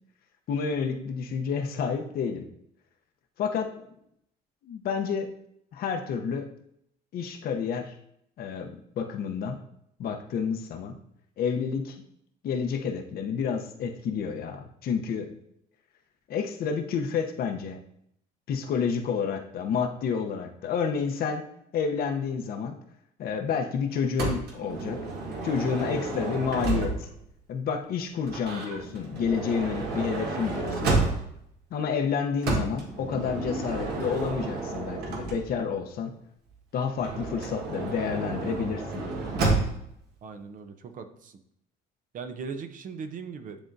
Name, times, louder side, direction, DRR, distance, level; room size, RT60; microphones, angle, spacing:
voice 1, 0.5-2.5 3.4-3.9 4.6-5.3 5.7-6.5 7.1-7.9 8.4-9.6 10.0-11.0 11.4-12.0 12.4-15.3 16.3-17.8 18.5-21.4 21.7-22.8 23.2-25.0 25.4-27.1 27.5-30.9 31.7-36.1 36.7-39.0, left 6 dB, 65° left, 5 dB, 0.8 m, -29 dB
Motor vehicle (road) / Sliding door, 24.2-27.3 28.2-31.5 32.4-35.7 37.0-39.9, right 3 dB, 75° right, 1.5 m, -31 dB
voice 2, 40.2-41.4 42.1-43.6, right 5 dB, 50° right, 8 dB, 0.7 m, -39 dB
9.9 x 3.7 x 2.6 m, 0.72 s
cardioid pair, 110°, 17 cm